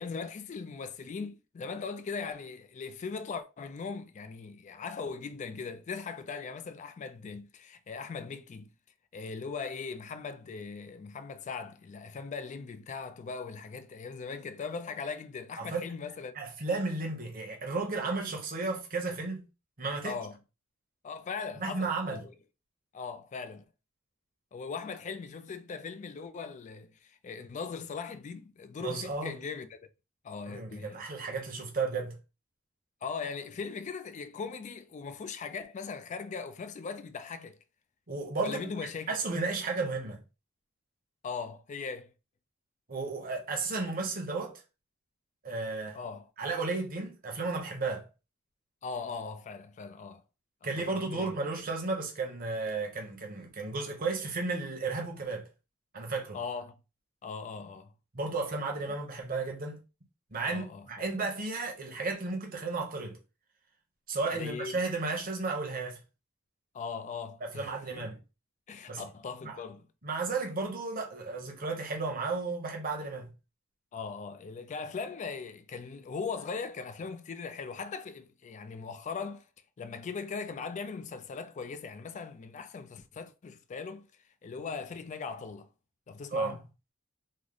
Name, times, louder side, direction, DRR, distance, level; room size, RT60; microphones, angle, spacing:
voice 1, 0.0-8.7 9.1-16.4 20.0-20.4 21.0-22.3 22.9-23.6 24.5-29.9 30.2-31.1 33.0-37.6 38.4-39.2 41.2-42.1 45.9-46.3 48.8-50.2 50.8-51.3 56.3-56.8 57.2-57.9 58.9-59.0 60.4-61.1 64.3-64.8 66.7-68.1 68.7-69.9 73.9-79.5 79.8-84.1 84.4-85.7 86.1-86.6, left 5 dB, 35° left, 0.3 m, -39 dB
voice 2, 15.6-15.9 16.3-19.5 19.8-20.2 21.6-22.2 28.8-29.3 30.5-32.2 38.1-38.8 39.1-40.2 42.9-44.6 45.4-46.0 46.4-48.1 50.6-55.5 55.9-56.4 58.1-59.8 60.3-63.2 64.1-66.0 67.4-68.2 68.9-69.0 69.4-69.6 70.0-73.3 86.3-86.5, right 3 dB, 45° right, 0.9 m, -33 dB
3.1 x 2.0 x 3.8 m
head